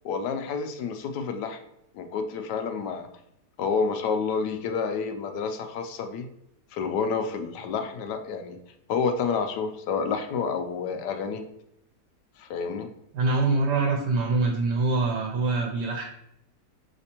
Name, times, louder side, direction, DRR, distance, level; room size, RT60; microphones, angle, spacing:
voice 1, 0.0-1.6 1.9-3.1 3.6-6.3 6.7-8.6 8.9-11.4 12.4-12.9, left 5 dB, 80° left, 6 dB, 1.2 m, -29 dB
voice 2, 13.1-16.0, right 3 dB, 85° right, 1 dB, 1.2 m, -24 dB
5.1 x 3.2 x 2.8 m, 0.76 s
omnidirectional pair, 1.8 m